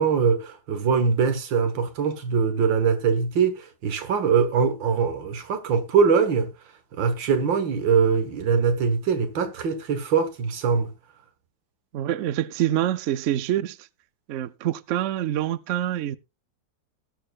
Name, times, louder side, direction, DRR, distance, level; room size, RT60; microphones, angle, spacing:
voice 1, 0.0-6.5 7.0-10.9, right 6 dB, 90° right, 2.1 m, -22 dB
voice 2, 11.9-13.8 14.3-16.2, right 12 dB, 65° right, 0.7 m, -26 dB
19.5 x 6.5 x 2.4 m
omnidirectional pair, 2.0 m